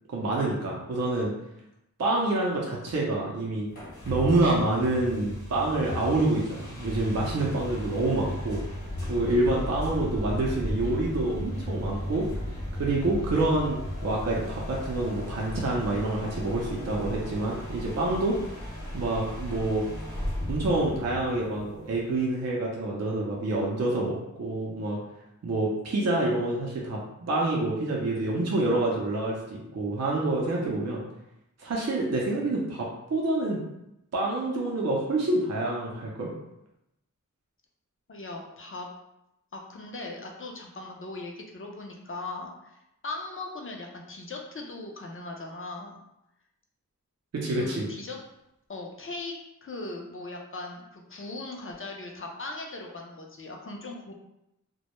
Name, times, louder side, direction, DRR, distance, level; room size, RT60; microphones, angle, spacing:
voice 1, 0.1-1.3 2.0-3.7 4.1-8.6 9.1-12.3 12.7-18.4 18.9-19.8 20.5-25.0 25.4-31.0 31.6-33.6 34.1-36.3 47.3-47.9, right 2 dB, 55° right, -3 dB, 0.5 m, -27 dB
sound 1, 3.7-22.2, equal, 70° left, 0.9 m, -35 dB
voice 2, 38.1-38.9 39.5-42.8 43.0-46.0 47.5-48.2 48.7-54.1, left 2 dB, 45° left, 1 dB, 0.5 m, -39 dB
2.1 x 2.0 x 2.9 m, 0.86 s
wide cardioid pair, 50°, 31 cm